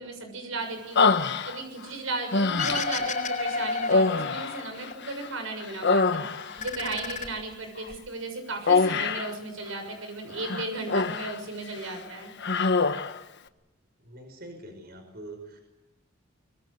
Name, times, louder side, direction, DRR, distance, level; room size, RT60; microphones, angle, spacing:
voice 1, 0.0-6.3 6.6-12.3, right 2 dB, 75° right, 6 dB, 6.7 m, -35 dB
Human voice, 1.0-1.9 2.3-3.1 3.8-5.3 5.6-6.7 8.7-9.4 10.4-11.4 11.7-12.0 12.4-13.2, left 4 dB, 60° left, 1.4 m, -25 dB
sound 1, 2.6-4.9 5.3-6.1 6.4-7.9, left 4 dB, 40° left, 4.2 m, -32 dB
voice 2, 14.0-15.6, right 2 dB, 50° right, 5 dB, 5.4 m, -44 dB
25.5 x 23.0 x 8.2 m, 0.98 s
head